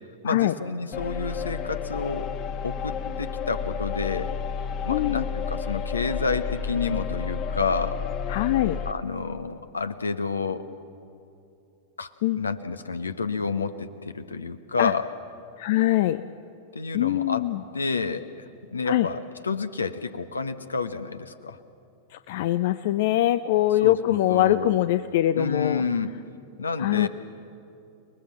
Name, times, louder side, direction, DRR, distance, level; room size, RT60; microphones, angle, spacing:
voice 1, 0.2-2.3 2.6-4.3 4.8-8.0 8.8-10.7 12.0-15.1 16.7-17.5 17.7-18.3 18.7-21.6 23.8-24.8 25.3-26.1 26.6-27.1, left 4 dB, 75° left, 10 dB, 1.1 m, -29 dB
sound 1, 0.9-8.9, left 6 dB, 35° left, 1.5 m, -31 dB
voice 2, 4.9-5.2 8.3-8.8 12.2-12.4 14.8-14.9 15.6-16.2 16.9-17.6 18.9-19.1 22.1-25.8 26.8-27.1, left 14 dB, 50° left, 13 dB, 0.6 m, -23 dB
29.5 x 20.5 x 7.5 m, 2.6 s
figure-of-eight pair, 90°, 0 cm